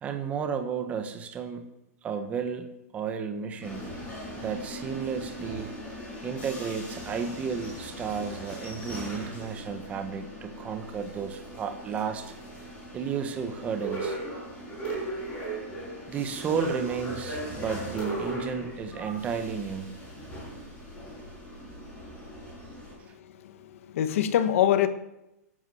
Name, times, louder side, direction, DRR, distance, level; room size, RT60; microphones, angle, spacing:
voice 1, 0.0-1.7 2.0-3.9 4.4-5.7 6.2-12.3 12.9-14.2 16.1-19.9, right 6 dB, 15° right, 1.5 m, -33 dB
sound 1, 3.6-22.9, right 1 dB, 10° left, 6.8 m, -38 dB
voice 2, 23.4-24.9, left 10 dB, 50° left, 1.5 m, -24 dB
12.0 x 11.5 x 8.0 m
hypercardioid pair, 160°, 9 cm